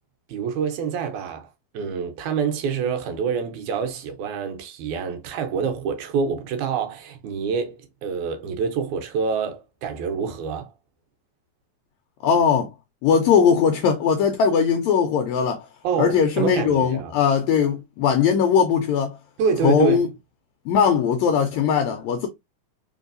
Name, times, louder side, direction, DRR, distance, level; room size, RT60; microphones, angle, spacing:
voice 1, 0.3-1.5 1.7-10.7 15.8-17.1 19.4-20.1, right 6 dB, 75° right, 2.1 m, -26 dB
voice 2, 12.2-12.7 13.0-15.7 16.0-19.1 19.6-20.1 20.7-22.3, left 7 dB, 80° left, 1.7 m, -19 dB
4.5 x 3.3 x 2.5 m
omnidirectional pair, 3.6 m